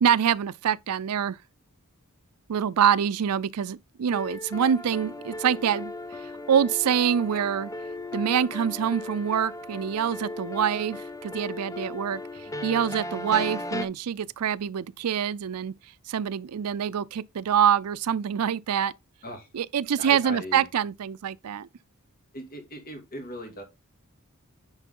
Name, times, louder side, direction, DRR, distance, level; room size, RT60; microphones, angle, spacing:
voice 1, 0.0-1.4 2.5-5.9 6.5-7.7 8.1-12.2 12.6-15.7 16.1-18.9 19.5-21.7, right 8 dB, 85° right, 0.4 m, -25 dB
sound 1, 4.1-13.9, left 2 dB, 15° left, 0.5 m, -37 dB
voice 2, 20.0-20.7 22.3-23.6, equal, 45° left, 2.5 m, -39 dB
9.8 x 4.6 x 3.7 m
head